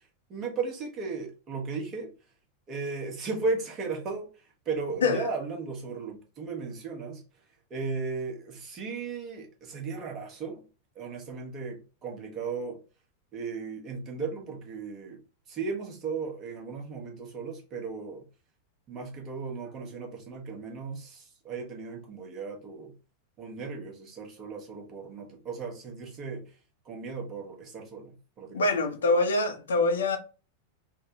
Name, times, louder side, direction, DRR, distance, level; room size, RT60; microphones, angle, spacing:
voice 1, 0.3-2.1 2.7-4.3 4.7-7.2 7.7-10.6 11.0-12.8 13.3-15.2 15.5-18.2 18.9-22.9 23.4-26.4 26.9-28.7, right 4 dB, 30° right, 0.9 m, -36 dB
voice 2, 28.5-30.2, left 3 dB, 65° left, 0.5 m, -25 dB
3.3 x 2.1 x 2.6 m
figure-of-eight pair, 90°, 0 cm